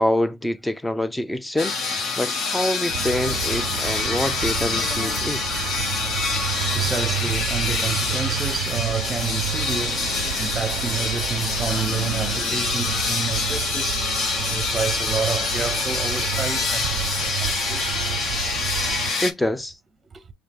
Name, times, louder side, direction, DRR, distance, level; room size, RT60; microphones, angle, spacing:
voice 1, 0.0-1.7 2.2-5.4 19.2-19.8, left 1 dB, 5° left, 0.5 m, -25 dB
sound 1, 1.6-19.3, left 4 dB, 45° left, 1.1 m, -26 dB
sound 2, 2.9-19.1, right 13 dB, 75° right, 0.4 m, -31 dB
voice 2, 6.0-18.0 20.1-20.2, right 5 dB, 20° right, 0.8 m, -30 dB
5.1 x 2.9 x 2.9 m
supercardioid pair, 110°, 0 cm